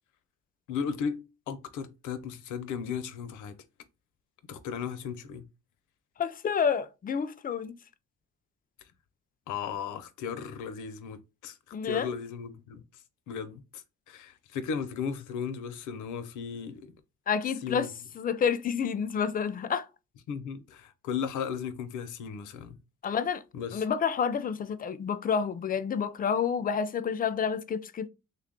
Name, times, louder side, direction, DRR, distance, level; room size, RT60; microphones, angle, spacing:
voice 1, 0.7-3.6 4.5-5.4 9.5-11.6 11.8-12.8 13.3-16.9 17.6-17.9 20.3-22.8 23.5-23.8, left 7 dB, 85° left, 0.6 m, -36 dB
voice 2, 6.2-7.8 11.7-12.1 17.3-17.9 18.2-19.9 23.0-23.4 23.7-28.1, left 7 dB, 30° left, 0.4 m, -29 dB
3.3 x 2.3 x 3.7 m
cardioid pair, 90°, 30 cm